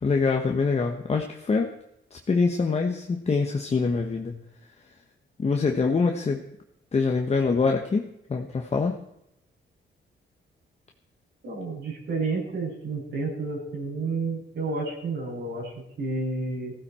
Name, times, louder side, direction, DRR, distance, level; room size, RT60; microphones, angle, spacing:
voice 1, 0.0-1.7 2.1-4.4 5.4-6.4 6.9-9.0, left 4 dB, 30° left, 3 dB, 1.3 m, -24 dB
voice 2, 11.4-16.7, right 3 dB, 70° right, -4 dB, 6.6 m, -30 dB
15.5 x 15.5 x 4.4 m, 0.80 s
cardioid pair, 110°, 20 cm